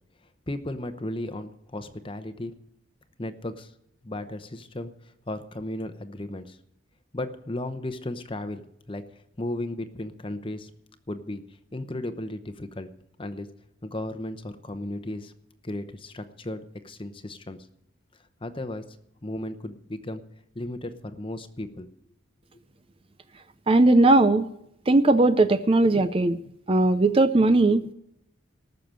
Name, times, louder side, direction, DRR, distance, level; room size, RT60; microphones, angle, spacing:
voice 1, 0.5-2.5 3.2-3.7 4.0-6.6 7.1-10.7 11.1-11.4 11.7-12.9 13.2-13.5 13.8-15.3 15.6-17.6 18.4-19.0 19.2-20.2 20.5-21.9, left 1 dB, 25° left, 10 dB, 0.9 m, -35 dB
voice 2, 23.7-24.5 24.9-26.4 26.7-27.9, right 2 dB, 30° right, 11 dB, 0.5 m, -19 dB
19.0 x 6.7 x 7.6 m, 0.78 s
head